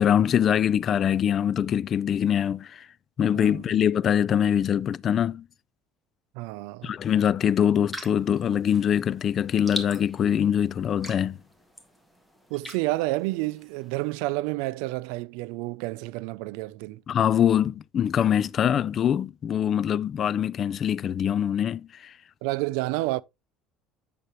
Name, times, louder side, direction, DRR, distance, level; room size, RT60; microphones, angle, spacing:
voice 1, 0.0-2.9 3.2-5.4 6.8-11.4 17.1-22.1, left 9 dB, 40° left, 0.3 m, -23 dB
voice 2, 6.3-6.9 12.5-17.0 22.4-23.2, right 20 dB, 85° right, 0.4 m, -30 dB
sound 1, 7.9-14.2, equal, ahead, 1.6 m, -42 dB
8.3 x 6.6 x 3.0 m
cardioid pair, 125°, 0 cm